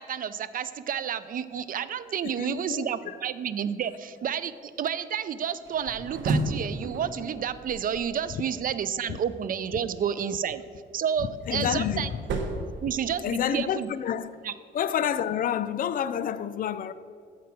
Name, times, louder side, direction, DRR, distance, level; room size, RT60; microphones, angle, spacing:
voice 1, 0.0-10.6 10.9-12.1 12.8-13.9 14.4-14.5, right 8 dB, 45° right, 0.4 m, -30 dB
voice 2, 2.4-2.8 11.5-12.1 13.2-14.3 14.7-16.9, left 9 dB, 45° left, 0.4 m, -28 dB
sound 1, 5.7-8.8 11.0-13.6, right 2 dB, 70° right, 0.9 m, -33 dB
7.2 x 4.7 x 5.9 m
cardioid pair, 90°, 20 cm